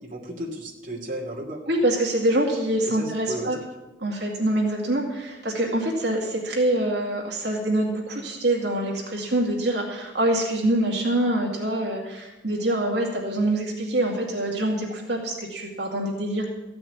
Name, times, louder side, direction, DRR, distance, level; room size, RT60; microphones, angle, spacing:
voice 1, 0.0-1.6 2.9-3.5, right 1 dB, 45° right, -2 dB, 2.7 m, -34 dB
voice 2, 1.7-3.6 4.0-16.5, right 1 dB, 70° right, -1 dB, 2.4 m, -25 dB
15.0 x 6.1 x 9.7 m, 1.1 s
head